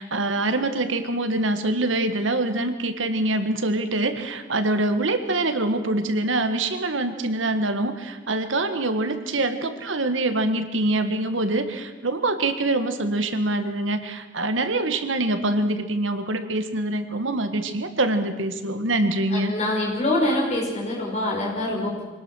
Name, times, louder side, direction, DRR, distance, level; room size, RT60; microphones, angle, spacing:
voice 1, 0.0-19.5, right 2 dB, 80° right, 8 dB, 1.7 m, -24 dB
voice 2, 19.5-22.0, left 1 dB, 35° left, -3 dB, 5.7 m, -24 dB
24.5 x 19.0 x 6.3 m, 1.2 s
head